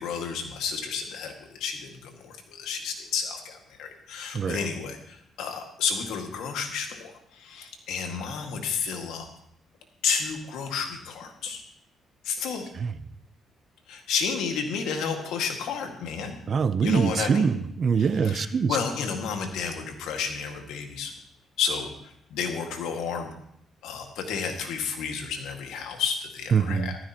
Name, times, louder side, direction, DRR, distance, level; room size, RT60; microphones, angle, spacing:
voice 1, 0.0-9.3 10.0-11.6 12.2-12.7 13.9-16.4 16.8-17.5 18.2-21.1 21.6-23.3 23.8-26.9, left 6 dB, 90° left, 3 dB, 2.0 m, -31 dB
voice 2, 16.5-18.8 26.5-27.0, right 6 dB, 50° right, 13 dB, 0.8 m, -24 dB
14.5 x 13.5 x 3.0 m, 0.71 s
cardioid pair, 90°, 0 cm